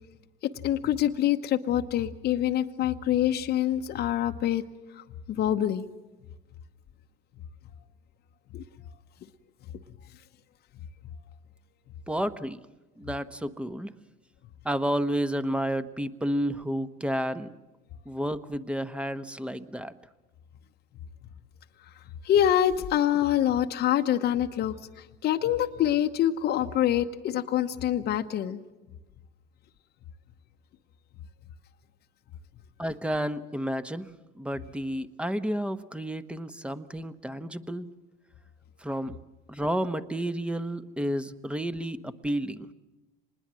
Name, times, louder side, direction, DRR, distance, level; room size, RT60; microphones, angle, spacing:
voice 1, 0.6-4.6 5.0-5.8 8.5-8.6 22.2-24.8 25.2-28.6, left 11 dB, 50° left, 6 dB, 1.0 m, -25 dB
voice 2, 12.1-12.6 13.0-13.9 14.6-17.5 18.0-19.9 32.8-34.1 34.3-37.9 38.8-39.2 39.5-42.7, equal, 5° right, 12 dB, 1.1 m, -31 dB
25.5 x 20.5 x 7.6 m, 1.1 s
supercardioid pair, 95°, 21 cm